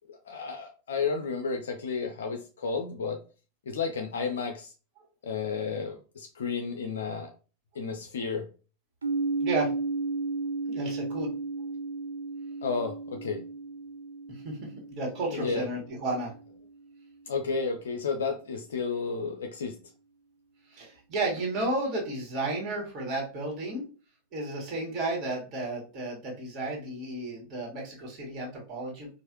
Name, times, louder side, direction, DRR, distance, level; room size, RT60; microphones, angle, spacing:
voice 1, 0.1-3.2 3.7-4.7 5.2-7.3 7.8-8.4 12.6-13.4 15.3-15.6 17.3-19.8, left 5 dB, 65° left, 4 dB, 0.5 m, -32 dB
sound 1, 9.0-16.8, right 3 dB, 75° right, 0.4 m, -34 dB
voice 2, 10.7-11.3 14.3-16.3 20.7-23.8 24.3-29.1, right 2 dB, 35° right, -2 dB, 1.8 m, -33 dB
4.6 x 2.6 x 2.9 m, 0.36 s
figure-of-eight pair, 90°, 0 cm